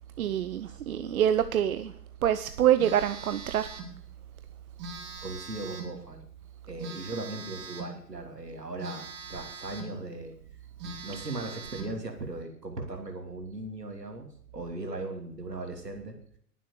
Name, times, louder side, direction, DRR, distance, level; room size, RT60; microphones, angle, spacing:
voice 1, 0.2-1.9 2.2-3.7, right 10 dB, 60° right, 11 dB, 0.9 m, -26 dB
Telephone, 2.8-4.0 4.8-6.0 6.8-8.0 8.8-10.0 10.4-10.5 10.8-12.0, right 4 dB, 35° right, 3.4 m, -42 dB
voice 2, 5.2-6.3 6.6-10.4 10.8-16.2, right 2 dB, 85° right, 4 dB, 3.2 m, -38 dB
20.0 x 7.5 x 7.0 m, 0.65 s
figure-of-eight pair, 95°, 47 cm